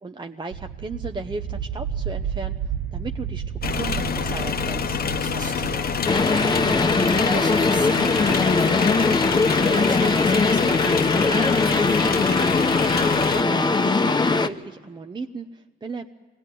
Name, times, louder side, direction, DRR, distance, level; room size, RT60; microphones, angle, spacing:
voice 1, 0.0-2.6 2.9-5.0 13.1-16.0, right 3 dB, 25° right, 5 dB, 0.8 m, -36 dB
sound 1, 0.5-11.2, right 8 dB, 70° right, 0.8 m, -33 dB
sound 2, 3.6-13.4, left 7 dB, 55° left, 1.0 m, -27 dB
voice 2, 5.2-6.0 6.3-12.3, right 4 dB, 45° right, 4 dB, 1.7 m, -37 dB
sound 3, 6.1-14.5, left 3 dB, 25° left, 1.0 m, -20 dB
24.0 x 18.0 x 9.2 m, 1.4 s
cardioid pair, 110°, 18 cm